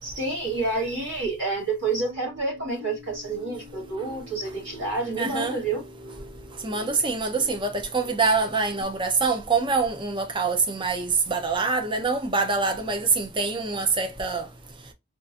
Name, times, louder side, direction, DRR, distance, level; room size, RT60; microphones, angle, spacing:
voice 1, 0.0-5.8, right 3 dB, 60° right, 2.4 m, -29 dB
sound 1, 1.8-8.8, left 1 dB, 80° right, 1.1 m, -46 dB
voice 2, 5.2-5.6 6.6-14.4, right 4 dB, 25° right, 0.6 m, -25 dB
3.6 x 2.5 x 2.6 m
head